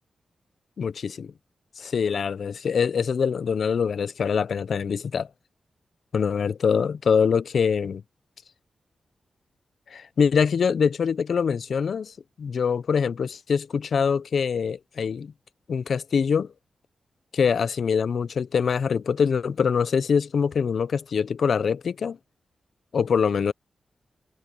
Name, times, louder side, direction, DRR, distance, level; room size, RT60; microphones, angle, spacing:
voice 1, 0.8-1.3 1.8-5.3 6.1-8.0 9.9-15.3 15.7-16.5 17.3-22.2 22.9-23.5, left 6 dB, 65° left, 0.5 m, -24 dB
wide cardioid pair, 145°, 0 cm